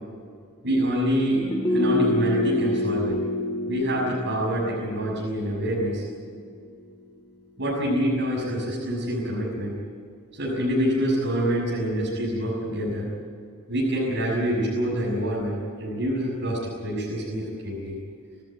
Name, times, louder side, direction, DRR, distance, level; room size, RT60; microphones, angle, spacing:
voice 1, 0.6-1.4 1.7-3.2 3.7-6.0 7.6-9.7 10.3-13.1 13.7-18.0, equal, 55° right, -4 dB, 6.7 m, -26 dB
sound 1, 1.3-6.5 6.8-6.9, left 1 dB, 25° left, 2.5 m, -27 dB
26.5 x 15.0 x 9.1 m, 2.2 s
head